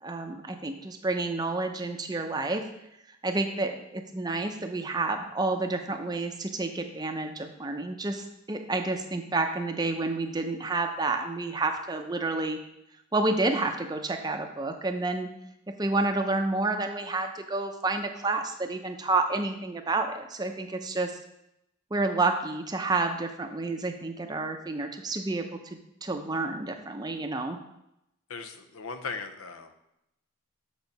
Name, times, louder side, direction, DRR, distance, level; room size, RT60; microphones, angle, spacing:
voice 1, 0.0-2.6 3.2-12.6 13.1-15.3 15.8-21.1 21.9-27.6, right 3 dB, 20° right, 5 dB, 0.5 m, -29 dB
voice 2, 28.3-29.7, left 4 dB, 75° left, 8 dB, 0.6 m, -38 dB
7.0 x 4.5 x 5.3 m, 0.84 s
head